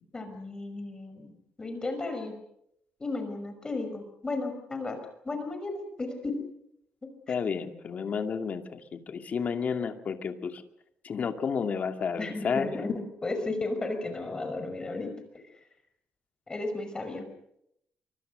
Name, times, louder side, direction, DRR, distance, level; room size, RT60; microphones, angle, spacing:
voice 1, 0.1-1.3 1.6-2.4 3.0-5.0 5.2-6.4 7.0-7.4 12.2-15.1 16.5-17.3, left 2 dB, 20° left, 7 dB, 5.6 m, -34 dB
voice 2, 7.3-10.6 11.0-12.7, left 6 dB, 45° left, 6 dB, 2.4 m, -31 dB
25.5 x 24.0 x 6.7 m, 0.75 s
cardioid pair, 140°, 4 cm